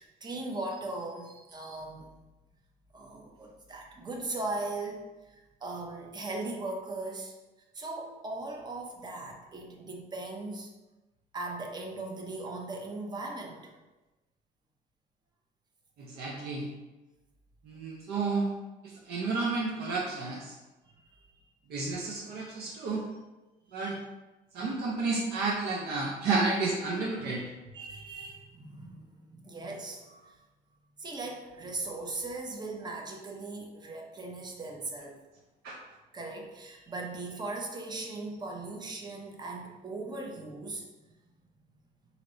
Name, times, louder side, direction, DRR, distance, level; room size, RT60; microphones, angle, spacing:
voice 1, 0.0-2.1 2.9-7.3 7.7-10.7 11.3-13.8 20.9-21.4 27.7-30.4 31.0-35.2 36.1-40.8, right 2 dB, 25° right, 1 dB, 0.6 m, -39 dB
voice 2, 16.0-16.7 17.6-18.5 18.8-20.5 21.7-23.0 23.7-24.0 24.5-27.4 35.6-35.8, right 3 dB, 70° right, -2 dB, 0.6 m, -31 dB
2.8 x 2.7 x 4.0 m, 1.1 s
cardioid pair, 110°, 17 cm